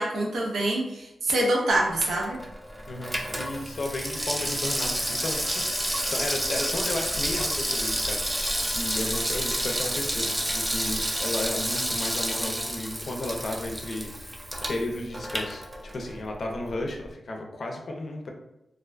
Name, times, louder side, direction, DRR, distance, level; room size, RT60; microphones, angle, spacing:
voice 1, 0.0-2.4, right 1 dB, 85° right, -2 dB, 0.6 m, -25 dB
Water tap faucet / Sink (filling or washing), 1.9-16.2 16.5-16.6, right 1 dB, 10° right, 0.3 m, -30 dB
voice 2, 2.9-14.4 14.7-15.7 15.9-18.3, left 2 dB, 55° left, 1 dB, 0.4 m, -34 dB
2.3 x 2.2 x 2.3 m, 0.90 s
wide cardioid pair, 105°, 0 cm